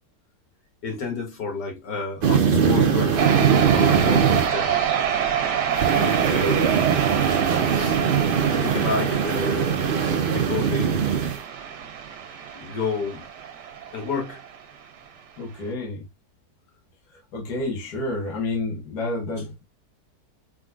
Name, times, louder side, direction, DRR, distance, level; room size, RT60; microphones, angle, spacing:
voice 1, 0.8-5.0 5.7-6.8 7.7-8.0 8.5-9.9 10.2-11.2 12.6-13.3 13.9-14.4, left 4 dB, 85° left, 2.5 m, -31 dB
sound 1, 2.2-4.5 5.8-11.4, right 7 dB, 55° right, 0.6 m, -21 dB
sound 2, 3.2-14.6, right 9 dB, 80° right, 1.5 m, -27 dB
voice 2, 15.4-16.1 17.1-19.6, left 2 dB, 70° left, 1.7 m, -30 dB
4.7 x 3.8 x 2.4 m
omnidirectional pair, 1.8 m